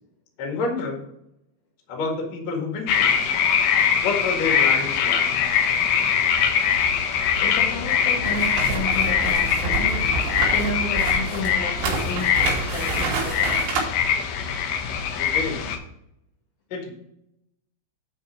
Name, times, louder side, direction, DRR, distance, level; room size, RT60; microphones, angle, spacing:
voice 1, 0.4-1.0 1.9-3.1 4.0-5.3 15.2-15.8 16.7-16.9, left 4 dB, 50° left, 1 dB, 2.4 m, -28 dB
sound 1, 2.9-15.8, left 7 dB, 85° left, 1.9 m, -22 dB
voice 2, 7.4-13.6, left 2 dB, 70° left, -3 dB, 2.7 m, -32 dB
sound 2, 8.2-13.8, right 4 dB, 80° right, 4.3 m, -28 dB
10.0 x 4.5 x 5.0 m, 0.79 s
omnidirectional pair, 5.2 m